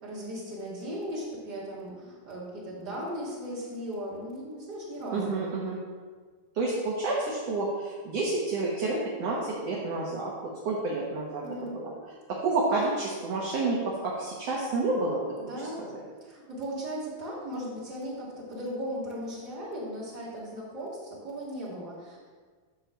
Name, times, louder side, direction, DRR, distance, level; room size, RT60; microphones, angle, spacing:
voice 1, 0.0-5.4 11.4-11.8 15.4-15.8 16.2-22.4, equal, 30° right, -6 dB, 3.2 m, -37 dB
voice 2, 5.1-5.8 6.5-10.3 10.7-11.9 12.4-15.2 15.9-16.0, right 3 dB, 55° right, -4 dB, 2.1 m, -29 dB
12.0 x 4.5 x 7.4 m, 1.5 s
omnidirectional pair, 4.1 m